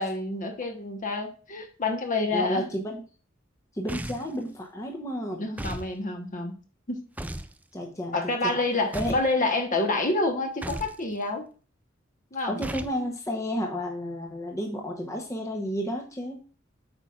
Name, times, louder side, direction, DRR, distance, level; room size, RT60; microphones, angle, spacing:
voice 1, 0.0-2.6 5.4-6.6 6.9-7.0 8.1-11.4 12.3-12.6, left 2 dB, 40° left, 5 dB, 1.1 m, -28 dB
voice 2, 2.3-3.0 3.7-5.5 7.7-8.2 8.4-8.6 8.9-9.2 12.5-16.4, equal, 15° left, 1 dB, 0.8 m, -31 dB
sound 1, 3.9-4.4 5.6-5.9 7.2-7.5 8.9-9.3 10.6-11.0 12.6-13.0, right 1 dB, 10° right, 0.3 m, -35 dB
8.1 x 5.6 x 2.4 m, 0.37 s
head